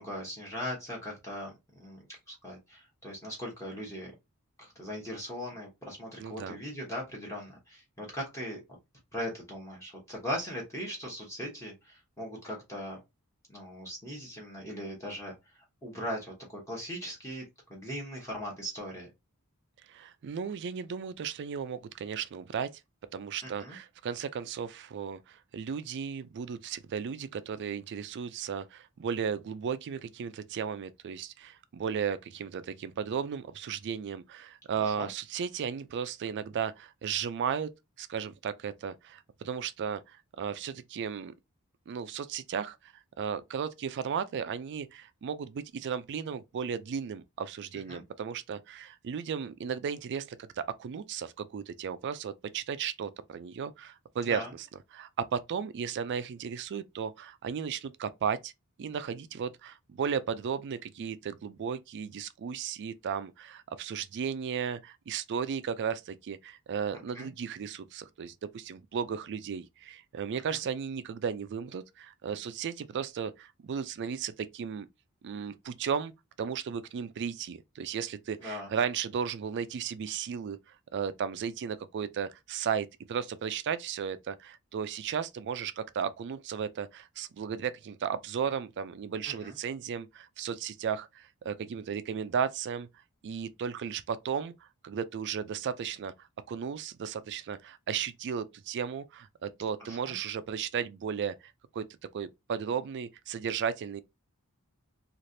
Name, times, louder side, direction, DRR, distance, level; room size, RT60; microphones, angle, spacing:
voice 1, 0.0-4.1 4.6-8.6 9.1-13.0 13.5-15.3 15.8-17.4 17.7-19.1 23.4-23.8 34.8-35.1 47.9-48.0 54.2-54.5 66.9-67.3 70.5-70.6 78.4-78.7 89.3-89.6 99.8-100.0, equal, 15° left, 1.0 m, -39 dB
voice 2, 6.2-6.6 19.9-22.7 23.1-37.7 38.0-41.3 41.9-54.7 54.9-58.5 58.8-74.9 75.2-76.1 76.4-92.9 93.2-94.5 94.8-101.9 102.1-104.0, right 7 dB, 50° right, 0.3 m, -35 dB
3.2 x 2.4 x 2.6 m
head